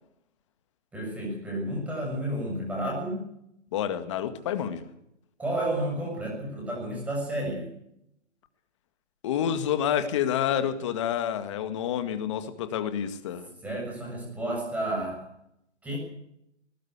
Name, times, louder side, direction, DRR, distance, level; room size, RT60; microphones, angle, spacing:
voice 1, 0.9-3.2 5.4-7.7 13.6-15.2 15.8-16.0, right 1 dB, 5° right, -1 dB, 7.1 m, -31 dB
voice 2, 3.7-4.9 9.2-13.5, left 9 dB, 25° left, 10 dB, 1.8 m, -28 dB
20.0 x 19.0 x 8.2 m, 0.78 s
hypercardioid pair, 160°, 37 cm